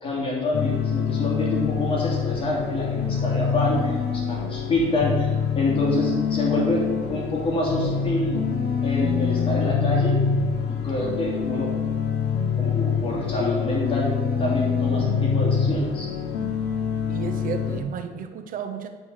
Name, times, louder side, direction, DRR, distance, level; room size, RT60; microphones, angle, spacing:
voice 1, 0.0-8.4 8.8-10.2 10.7-11.7 12.6-14.1 14.4-16.1, left 2 dB, 35° left, -4 dB, 2.8 m, -27 dB
sound 1, 0.5-17.8, left 6 dB, 80° left, 1.1 m, -25 dB
voice 2, 17.1-18.9, right 7 dB, 55° right, 7 dB, 0.9 m, -32 dB
8.7 x 4.2 x 6.4 m, 1.4 s
cardioid pair, 110°, 17 cm